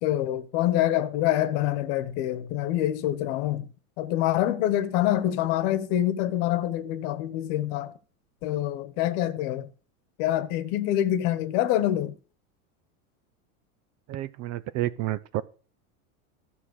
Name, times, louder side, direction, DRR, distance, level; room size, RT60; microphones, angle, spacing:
voice 1, 0.0-3.7 4.0-7.9 8.4-9.7 10.2-12.2, left 13 dB, 55° left, 1.3 m, -26 dB
voice 2, 14.1-15.4, right 14 dB, 40° right, 0.6 m, -30 dB
13.0 x 5.8 x 6.4 m
hypercardioid pair, 110°, 44 cm